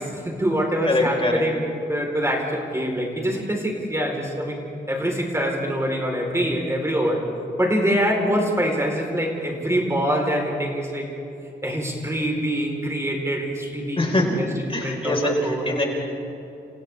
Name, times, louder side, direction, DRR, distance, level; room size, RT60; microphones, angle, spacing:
voice 1, 0.0-4.6 4.9-7.2 7.6-11.1 11.6-14.1 14.4-15.8, equal, 15° right, 0 dB, 4.3 m, -25 dB
voice 2, 0.8-1.5 14.0-15.8, left 1 dB, 30° left, 0 dB, 4.9 m, -23 dB
29.5 x 29.5 x 3.6 m, 2.9 s
cardioid pair, 85°, 18 cm